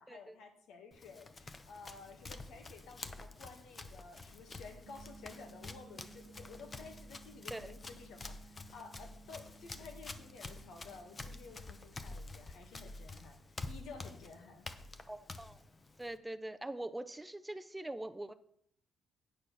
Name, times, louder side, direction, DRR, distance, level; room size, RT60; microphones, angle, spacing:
voice 1, 0.0-13.4 13.7-14.6, left 4 dB, 80° left, 5 dB, 1.7 m, -53 dB
Run, 0.9-16.2, left 3 dB, 30° left, 0.8 m, -49 dB
sound 1, 4.8-11.8, right 5 dB, 55° right, 0.7 m, -59 dB
voice 2, 15.1-15.6 16.0-18.3, right 1 dB, 10° right, 11 dB, 0.5 m, -43 dB
9.1 x 6.3 x 6.3 m, 0.69 s
cardioid pair, 105°, 0 cm